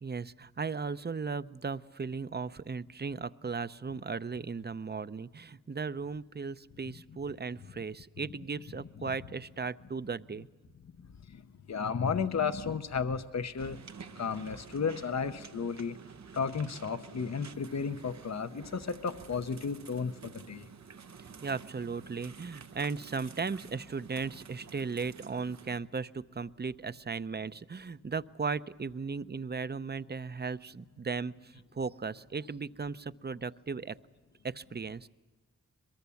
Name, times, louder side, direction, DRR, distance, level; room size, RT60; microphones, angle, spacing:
voice 1, 0.0-10.5 21.4-34.0 34.4-35.1, right 5 dB, 35° right, 15 dB, 0.6 m, -36 dB
voice 2, 8.2-9.4 11.3-11.4 11.7-13.8 14.2-16.0 16.3-20.7, left 6 dB, 65° left, 10 dB, 0.8 m, -34 dB
sound 1, 13.6-25.8, right 6 dB, 70° right, 0.8 m, -50 dB
22.5 x 22.0 x 7.1 m, 1.3 s
cardioid pair, 50°, 29 cm